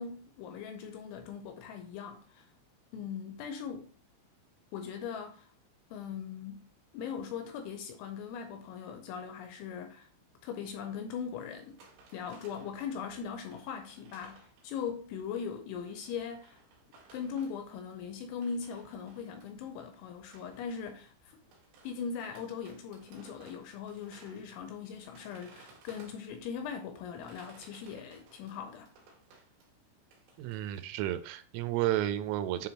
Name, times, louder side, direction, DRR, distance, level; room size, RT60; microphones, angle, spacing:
voice 1, 0.0-2.5 2.9-3.9 4.7-5.5 5.9-6.7 6.9-10.1 10.4-11.8 12.1-16.6 17.1-21.4 21.8-28.9, left 6 dB, 85° left, 2.8 m, -40 dB
sound 1, 11.6-15.3 15.7-19.7 20.1-26.5 27.0-29.7 30.1-30.8, right 3 dB, 70° right, 4.0 m, -60 dB
voice 2, 30.4-32.7, right 13 dB, 90° right, 3.2 m, -32 dB
9.4 x 3.6 x 2.9 m
omnidirectional pair, 5.8 m